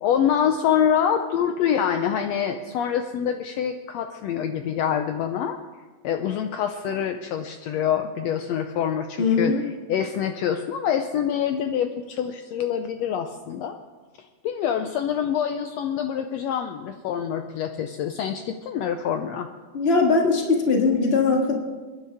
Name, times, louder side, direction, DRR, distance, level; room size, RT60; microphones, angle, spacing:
voice 1, 0.0-5.6 6.0-9.5 9.9-13.8 14.4-19.5, left 8 dB, 75° left, 7 dB, 1.7 m, -25 dB
voice 2, 9.2-9.6 19.7-21.5, left 4 dB, 25° left, 1 dB, 1.5 m, -20 dB
29.5 x 10.0 x 3.5 m, 1.4 s
omnidirectional pair, 3.3 m